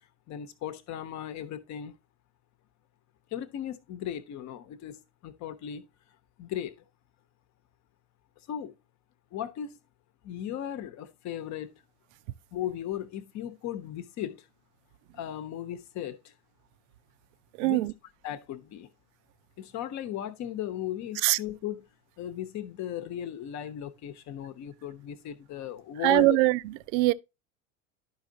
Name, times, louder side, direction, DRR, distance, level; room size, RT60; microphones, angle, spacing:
voice 1, 0.3-1.9 3.3-5.9 6.4-6.7 8.5-8.7 9.3-9.8 10.2-11.8 12.5-14.5 15.1-16.3 17.6-17.9 18.2-18.9 19.6-21.8 22.2-26.4, left 10 dB, 45° left, 1.0 m, -36 dB
voice 2, 17.6-17.9 21.2-21.4 26.0-27.1, right 20 dB, 60° right, 0.5 m, -23 dB
11.0 x 5.3 x 2.7 m
hypercardioid pair, 80°, 40 cm